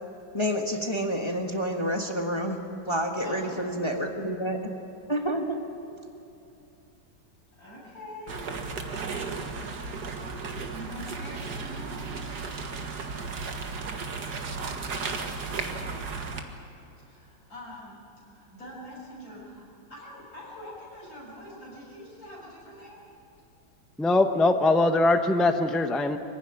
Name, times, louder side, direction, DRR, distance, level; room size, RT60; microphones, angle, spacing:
voice 1, 0.3-4.6 5.1-5.6, equal, 15° left, 2 dB, 1.4 m, -29 dB
voice 2, 3.2-3.8 7.6-8.4 10.7-12.0 17.0-18.0 18.2-19.6 19.9-23.0, left 1 dB, 50° left, -6 dB, 7.9 m, -44 dB
sound 1, 8.3-16.4, right 4 dB, 60° right, 2.1 m, -34 dB
voice 3, 24.0-26.2, left 2 dB, ahead, 6 dB, 0.4 m, -22 dB
24.0 x 16.0 x 10.0 m, 2.7 s
omnidirectional pair, 2.1 m